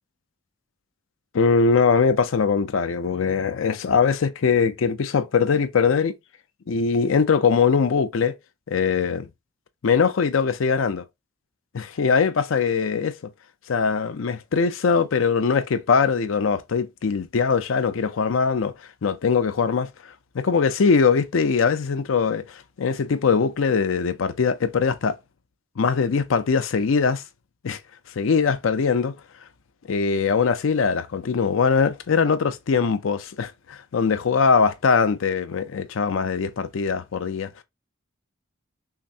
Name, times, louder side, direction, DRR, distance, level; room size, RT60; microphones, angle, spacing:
voice 1, 1.3-6.2 6.7-8.3 8.7-9.3 9.8-11.0 11.7-13.2 13.7-18.7 19.0-19.9 20.3-25.2 25.8-27.2 27.6-27.8 28.2-29.2 29.9-37.6, left 5 dB, 85° left, 0.5 m, -21 dB
5.7 x 2.0 x 2.7 m
head